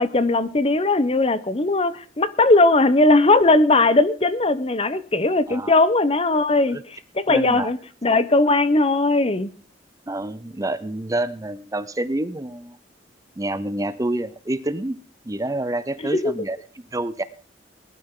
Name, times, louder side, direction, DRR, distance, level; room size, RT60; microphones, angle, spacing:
voice 1, 0.0-9.5 16.1-16.3, left 2 dB, 30° left, 14 dB, 0.9 m, -19 dB
voice 2, 7.3-7.7 10.1-12.8 13.4-15.0 15.3-17.2, right 1 dB, 20° right, 14 dB, 0.7 m, -28 dB
19.5 x 12.0 x 3.8 m, 0.39 s
head